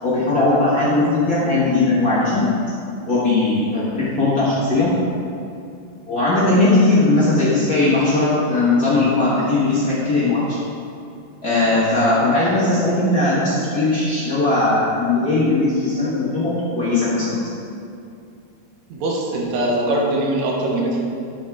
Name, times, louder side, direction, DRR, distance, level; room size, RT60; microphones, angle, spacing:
voice 1, 0.0-2.5 3.1-4.9 6.1-10.6 11.4-17.4, left 2 dB, 55° left, -10 dB, 1.0 m, -18 dB
voice 2, 18.9-21.0, right 1 dB, 65° right, -2 dB, 2.0 m, -21 dB
8.8 x 6.4 x 3.6 m, 2.5 s
omnidirectional pair, 4.0 m